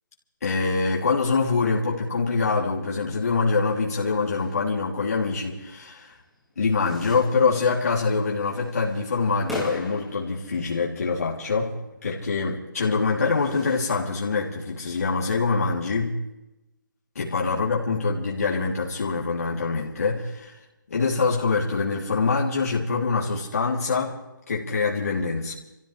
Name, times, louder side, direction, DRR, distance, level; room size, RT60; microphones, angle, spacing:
voice 1, 0.4-6.1 6.6-11.7 12.0-16.2 17.1-20.6 20.9-24.2 24.5-25.5, left 4 dB, 45° left, -4 dB, 3.2 m, -24 dB
sound 1, 4.1-15.4, left 1 dB, ahead, 1.5 m, -43 dB
27.5 x 15.0 x 3.4 m, 0.96 s
hypercardioid pair, 175°, 11 cm